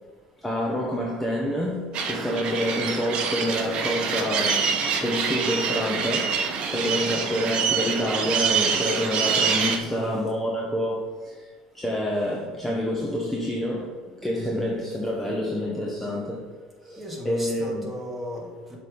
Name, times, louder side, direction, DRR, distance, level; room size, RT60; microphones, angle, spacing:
voice 1, 0.4-4.7 5.0-6.4 6.7-11.5 11.7-14.0 14.2-16.5 16.8-17.9, left 1 dB, 5° left, -3 dB, 1.0 m, -27 dB
sound 1, 1.9-9.8, right 6 dB, 55° right, 1.0 m, -26 dB
voice 2, 9.7-10.2 14.3-14.8 17.0-18.8, equal, 10° right, -2 dB, 1.8 m, -37 dB
7.4 x 3.4 x 5.4 m, 1.4 s
cardioid pair, 110°, 2 cm